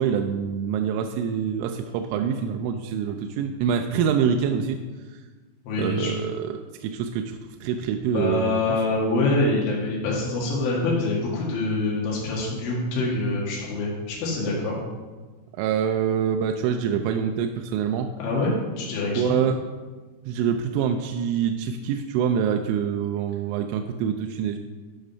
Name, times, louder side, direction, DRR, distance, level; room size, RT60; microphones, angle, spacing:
voice 1, 0.0-4.8 5.8-8.6 15.6-18.1 19.2-19.6 20.3-24.6, right 8 dB, 85° right, 5 dB, 3.0 m, -25 dB
voice 2, 5.7-6.1 8.1-14.8 18.2-18.5 18.8-19.4, left 2 dB, 80° left, -5 dB, 4.5 m, -25 dB
11.5 x 5.0 x 5.5 m, 1.3 s
omnidirectional pair, 5.4 m